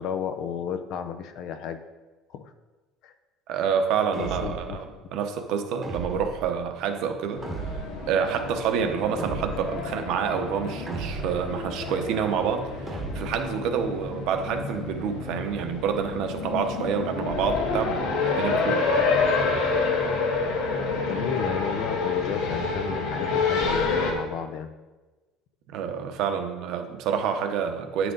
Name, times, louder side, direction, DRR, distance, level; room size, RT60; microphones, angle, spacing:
voice 1, 0.0-1.8 2.3-2.5 3.0-3.1 4.2-5.1 20.7-24.7, left 8 dB, 50° left, 9 dB, 0.6 m, -33 dB
voice 2, 3.5-7.8 8.1-18.9 25.7-28.1, right 7 dB, 55° right, 6 dB, 0.9 m, -28 dB
sound 1, 4.1-4.8 5.8-6.5 7.4-8.1 9.2-9.8 10.9-11.5 12.9-13.5, right 3 dB, 10° right, 1.1 m, -35 dB
sound 2, 7.3-24.1, left 4 dB, 80° left, 1.7 m, -28 dB
9.5 x 6.0 x 3.9 m, 1.2 s
cardioid pair, 175°, 0 cm